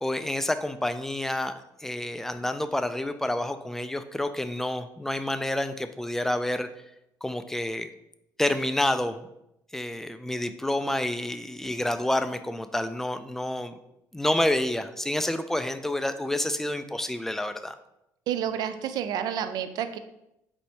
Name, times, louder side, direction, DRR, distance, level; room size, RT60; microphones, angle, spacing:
voice 1, 0.0-6.7 7.2-7.9 8.4-9.3 9.7-13.8 14.1-17.8, left 1 dB, 5° left, 10 dB, 0.3 m, -29 dB
voice 2, 18.3-20.0, right 9 dB, 70° right, 10 dB, 0.4 m, -29 dB
4.1 x 2.7 x 4.5 m, 0.83 s
supercardioid pair, 85°, 7 cm